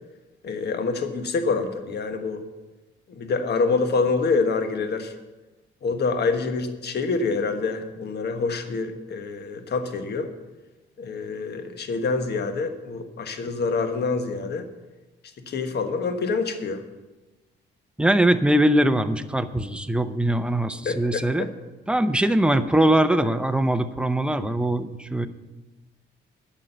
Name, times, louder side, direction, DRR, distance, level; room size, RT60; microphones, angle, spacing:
voice 1, 0.4-2.4 3.1-5.1 5.8-10.3 11.0-14.7 15.5-16.8 20.8-21.5, left 4 dB, 55° left, 7 dB, 1.4 m, -26 dB
voice 2, 18.0-21.5 21.9-25.3, right 1 dB, 5° right, 10 dB, 0.7 m, -21 dB
9.9 x 6.5 x 8.0 m, 1.1 s
cardioid pair, 90°, 20 cm